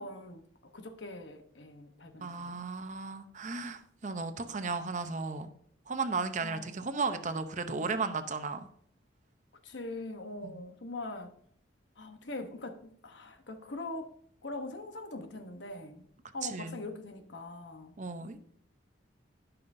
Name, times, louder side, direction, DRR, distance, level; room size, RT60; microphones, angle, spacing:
voice 1, 0.0-2.6 6.4-6.7 9.6-11.3 12.0-14.1 14.4-16.1 16.3-18.0, left 2 dB, 70° left, 1.0 m, -42 dB
voice 2, 2.2-5.5 5.9-8.7 10.4-10.6 16.4-16.8 18.0-18.5, right 4 dB, 40° right, 0.7 m, -35 dB
16.5 x 5.6 x 2.6 m
head